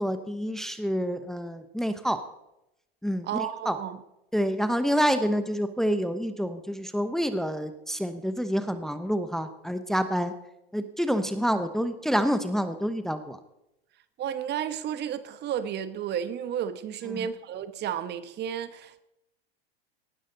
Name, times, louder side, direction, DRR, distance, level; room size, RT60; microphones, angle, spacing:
voice 1, 0.0-2.2 3.0-3.8 4.3-10.3 10.7-13.4 17.1-17.3, equal, ahead, 10 dB, 1.0 m, -28 dB
voice 2, 3.2-4.0 14.2-19.0, right 9 dB, 35° right, 13 dB, 1.1 m, -32 dB
18.5 x 12.0 x 4.0 m, 0.86 s
hypercardioid pair, 105°, 30 cm